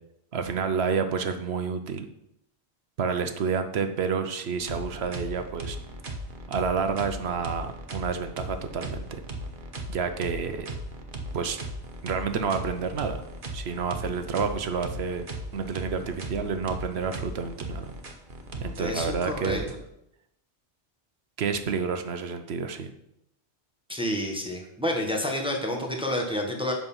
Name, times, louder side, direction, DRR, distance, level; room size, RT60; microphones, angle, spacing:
voice 1, 0.3-2.0 3.0-5.8 6.5-9.2 9.9-10.7 11.3-11.6 12.0-13.2 13.5-15.2 15.5-17.9 18.6-19.7 21.4-22.9, right 5 dB, 75° right, 8 dB, 1.0 m, -29 dB
sound 1, 4.6-19.7, right 1 dB, 55° right, 1.2 m, -37 dB
voice 2, 18.8-19.6 23.9-26.7, left 1 dB, 5° right, 1 dB, 1.2 m, -29 dB
8.0 x 6.1 x 5.5 m, 0.81 s
omnidirectional pair, 1.1 m